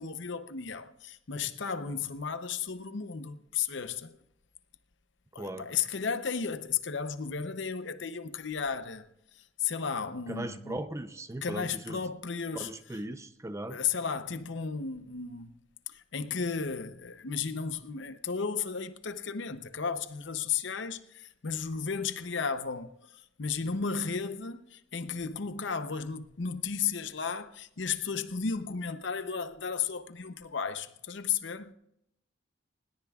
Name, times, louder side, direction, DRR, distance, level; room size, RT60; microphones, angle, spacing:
voice 1, 0.0-4.2 5.3-9.1 9.3-10.8 11.4-12.7 13.7-15.5 15.9-31.7, left 6 dB, 65° left, 0.7 m, -34 dB
voice 2, 5.4-5.7 10.3-12.0 12.6-13.8, right 1 dB, 15° right, 0.6 m, -38 dB
20.5 x 17.5 x 2.4 m
head